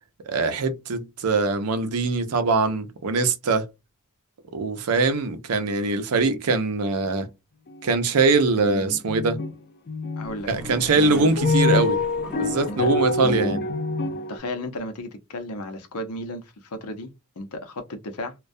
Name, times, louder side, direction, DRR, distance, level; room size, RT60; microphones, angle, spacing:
voice 1, 0.3-3.7 4.5-7.3 7.8-9.4 10.5-12.0 12.3-13.6, right 3 dB, 85° right, 0.6 m, -22 dB
sound 1, 7.7-7.9 8.1-9.5 9.9-14.4, left 3 dB, 45° left, 0.6 m, -26 dB
voice 2, 10.2-10.5 12.7-12.9 14.3-17.1 17.4-18.3, left 1 dB, 90° left, 0.7 m, -34 dB
Toilet flush, 10.2-13.3, equal, 5° right, 0.6 m, -41 dB
2.2 x 2.2 x 2.5 m
head